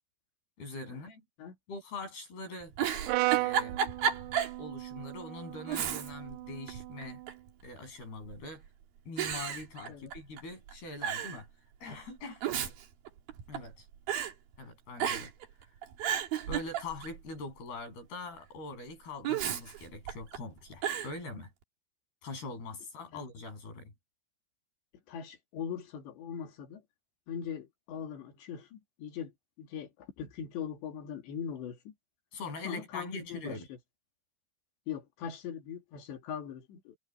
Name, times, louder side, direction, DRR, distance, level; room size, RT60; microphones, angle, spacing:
voice 1, 0.6-1.2 1.7-2.7 3.3-3.8 4.6-7.2 7.6-8.6 9.1-11.5 11.8-12.4 13.5-13.9 14.6-15.3 16.5-21.5 22.2-23.9 32.3-33.7, left 3 dB, 65° left, 9.1 m, -43 dB
Giggle, 2.6-4.6 5.0-5.1 5.7-6.4 6.7-7.5 8.3-8.7 9.2-10.4 10.7-10.8 11.0-11.4 12.2-13.7 14.1-14.3 15.0-15.5 15.8-17.2 19.2-20.4 20.8-21.1, right 9 dB, 60° right, 3.6 m, -33 dB
Brass instrument, 3.1-7.3, right 21 dB, 85° right, 2.8 m, -35 dB
voice 2, 25.1-26.8 27.3-31.9 32.6-33.8 34.9-37.0, left 8 dB, 85° left, 4.8 m, -41 dB
omnidirectional pair, 4.9 m